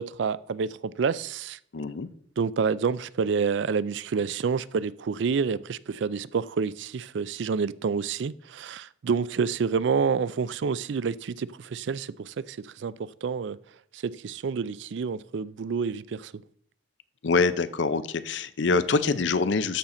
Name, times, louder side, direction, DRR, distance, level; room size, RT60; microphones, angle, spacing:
voice 1, 0.0-1.9 2.4-13.6 13.9-16.4, right 5 dB, 70° right, 0.4 m, -28 dB
voice 2, 1.7-2.1 17.2-19.8, left 4 dB, 70° left, 0.6 m, -25 dB
13.0 x 5.7 x 3.8 m
head